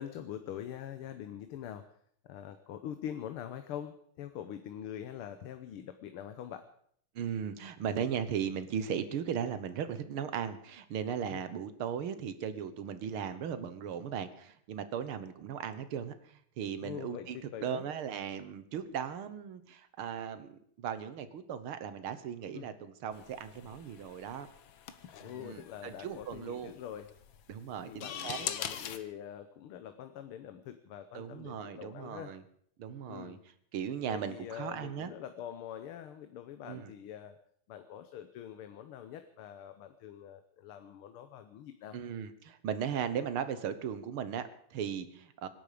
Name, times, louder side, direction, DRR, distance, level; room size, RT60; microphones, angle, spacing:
voice 1, 0.0-1.9 2.2-6.7 11.3-11.4 16.8-17.9 22.5-22.7 25.2-27.1 27.9-32.3 33.1-33.4 34.1-37.4 37.7-42.0, left 10 dB, 90° left, 9 dB, 1.8 m, -44 dB
voice 2, 7.2-24.5 25.2-26.7 27.5-28.5 31.1-32.4 32.8-33.4 33.7-35.1 36.6-36.9 41.9-45.5, right 8 dB, 80° right, 12 dB, 2.0 m, -37 dB
sound 1, 23.1-29.0, left 9 dB, 70° left, 1.8 m, -43 dB
25.5 x 11.0 x 5.0 m, 0.64 s
omnidirectional pair, 2.3 m